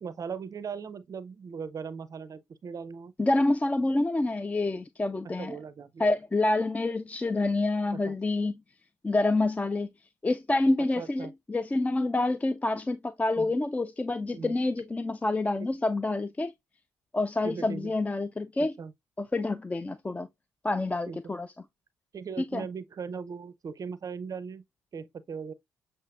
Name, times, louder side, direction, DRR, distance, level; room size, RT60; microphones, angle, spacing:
voice 1, 0.0-3.1 5.2-6.0 7.9-8.1 11.0-11.3 13.4-13.5 14.3-14.6 17.4-17.9 18.6-18.9 21.1-21.2 22.1-24.6 24.9-25.5, right 6 dB, 40° right, 0.5 m, -39 dB
voice 2, 3.2-5.6 6.0-8.6 9.0-9.9 10.2-16.5 17.1-18.7 19.2-20.3 20.6-21.5 22.5-22.6, left 2 dB, 15° left, 0.4 m, -27 dB
7.3 x 2.5 x 2.4 m
hypercardioid pair, 45°, 9 cm